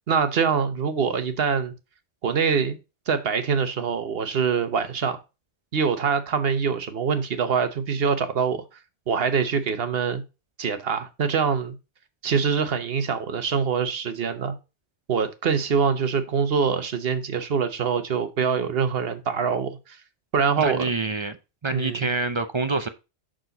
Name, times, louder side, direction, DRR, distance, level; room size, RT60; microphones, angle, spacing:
voice 1, 0.1-1.7 2.2-2.8 3.1-5.2 5.7-8.6 9.1-10.2 10.6-11.8 12.2-14.5 15.1-20.0 20.3-20.8 21.7-22.1, right 6 dB, 55° right, 1.2 m, -24 dB
voice 2, 20.6-21.4 21.6-22.9, right 3 dB, 40° right, 0.4 m, -26 dB
6.4 x 6.3 x 4.0 m
omnidirectional pair, 1.2 m